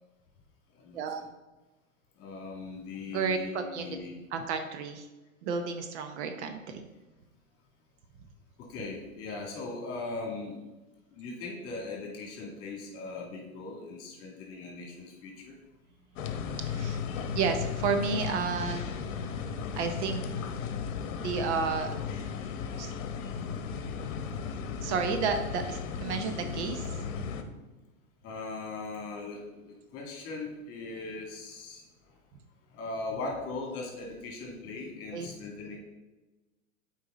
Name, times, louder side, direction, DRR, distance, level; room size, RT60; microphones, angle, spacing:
voice 1, 2.2-4.2 8.6-10.6 11.1-15.5 28.2-31.8 32.7-35.8, left 3 dB, 35° left, -1 dB, 2.5 m, -39 dB
voice 2, 3.1-4.0 4.3-5.1 5.4-6.9 16.7-17.0 17.3-18.9 19.7-20.2 21.2-21.9 22.8-22.9 24.8-27.0 35.1-35.3, right 5 dB, 55° right, 6 dB, 0.9 m, -31 dB
sound 1, 16.2-27.4, left 6 dB, 65° left, 1.0 m, -35 dB
8.2 x 4.7 x 4.0 m, 1.1 s
hypercardioid pair, 125°, 42 cm